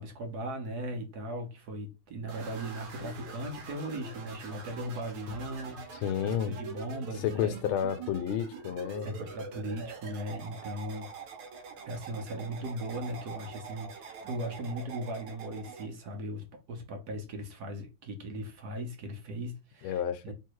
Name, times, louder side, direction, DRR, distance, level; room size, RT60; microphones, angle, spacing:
voice 1, 0.0-7.6 9.0-11.1 11.9-20.3, right 1 dB, 60° right, 1.3 m, -38 dB
sound 1, 2.3-15.9, right 5 dB, 85° right, 1.6 m, -45 dB
voice 2, 6.0-6.6 7.2-9.2 19.8-20.3, left 9 dB, 90° left, 1.5 m, -31 dB
3.3 x 3.1 x 4.6 m
omnidirectional pair, 2.2 m